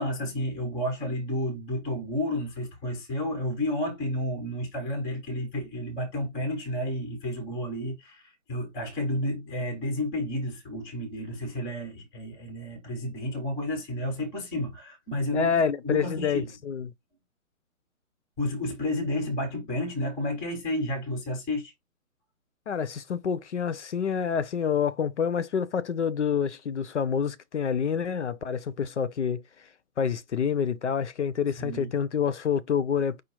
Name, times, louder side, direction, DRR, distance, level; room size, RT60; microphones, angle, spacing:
voice 1, 0.0-16.5 18.4-21.7 31.6-31.9, left 1 dB, 5° left, 0.5 m, -31 dB
voice 2, 15.3-16.9 22.7-29.7 30.0-33.2, left 7 dB, 55° left, 0.6 m, -27 dB
5.0 x 2.3 x 4.4 m
figure-of-eight pair, 145°, 43 cm